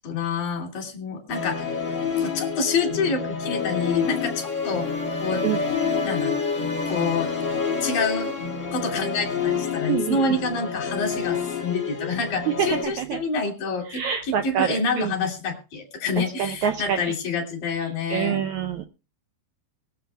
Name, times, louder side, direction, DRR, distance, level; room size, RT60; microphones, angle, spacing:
voice 1, 0.0-1.7 2.2-4.9 5.2-5.4 6.0-6.3 6.9-7.3 7.8-8.3 8.7-18.4, left 4 dB, 65° left, 2 dB, 4.5 m, -27 dB
Musical instrument, 1.3-12.8, left 5 dB, 30° left, 1.4 m, -28 dB
voice 2, 9.9-10.2 12.5-13.2 13.9-15.1 16.2-17.0 18.1-18.9, right 9 dB, 75° right, 6 dB, 1.8 m, -26 dB
21.5 x 7.5 x 3.4 m, 0.32 s
omnidirectional pair, 4.2 m